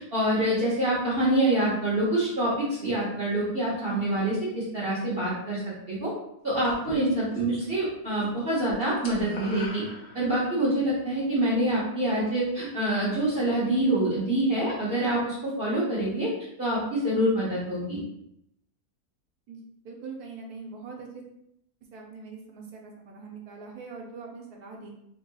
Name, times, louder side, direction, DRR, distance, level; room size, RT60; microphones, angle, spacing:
voice 1, 0.0-5.6 5.9-6.1 6.4-9.8 10.1-16.3 16.6-18.0, right 1 dB, 45° right, -7 dB, 1.0 m, -26 dB
sound 1, 6.6-7.6 7.9-8.3 8.5-10.6, left 2 dB, 65° left, 1.3 m, -42 dB
voice 2, 19.8-21.2 21.9-24.9, right 4 dB, 80° right, 0 dB, 1.3 m, -42 dB
4.1 x 3.6 x 2.3 m, 0.78 s
omnidirectional pair, 1.6 m